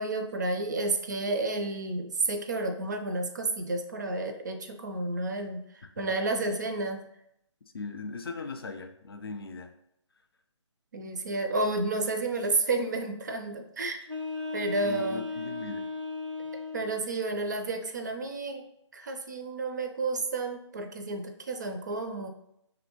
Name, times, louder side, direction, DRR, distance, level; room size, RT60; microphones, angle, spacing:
voice 1, 0.0-7.0 10.9-14.0 14.5-15.2 16.7-18.6 18.9-22.3, right 2 dB, 35° right, 6 dB, 0.4 m, -31 dB
voice 2, 7.7-9.7 14.8-15.9, left 4 dB, 50° left, 6 dB, 0.5 m, -39 dB
sound 1, 14.0-17.0, left 3 dB, 90° right, 0.7 m, -36 dB
5.2 x 2.7 x 2.8 m, 0.77 s
figure-of-eight pair, 145°, 16 cm